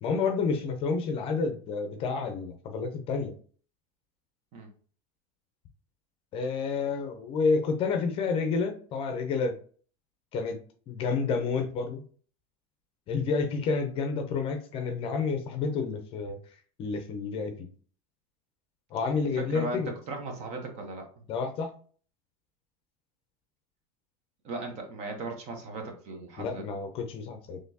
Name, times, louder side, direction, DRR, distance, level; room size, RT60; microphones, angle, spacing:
voice 1, 0.0-3.3 6.3-9.6 10.3-10.6 10.9-12.0 13.1-16.4 16.8-17.7 18.9-19.9 21.3-21.7 26.4-27.6, left 4 dB, 35° left, 6 dB, 0.6 m, -29 dB
voice 2, 19.4-19.8 20.1-21.0 24.4-26.7, right 2 dB, 40° right, 3 dB, 1.0 m, -37 dB
4.2 x 3.1 x 2.7 m, 0.44 s
supercardioid pair, 155°, 17 cm